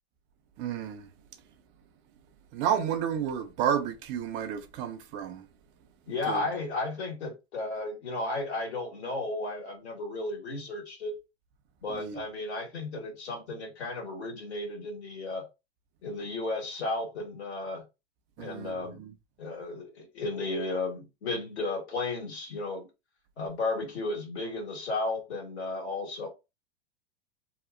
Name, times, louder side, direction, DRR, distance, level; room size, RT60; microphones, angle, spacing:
voice 1, 0.6-1.1 2.5-5.5 6.3-6.4 11.9-12.2 18.4-19.1, right 8 dB, 35° right, 0.4 m, -31 dB
voice 2, 6.1-11.1 11.8-15.4 16.0-17.8 18.4-19.0 19.4-22.9 23.4-26.3, left 2 dB, 85° left, 1.4 m, -34 dB
2.8 x 2.3 x 2.4 m
hypercardioid pair, 115°, 32 cm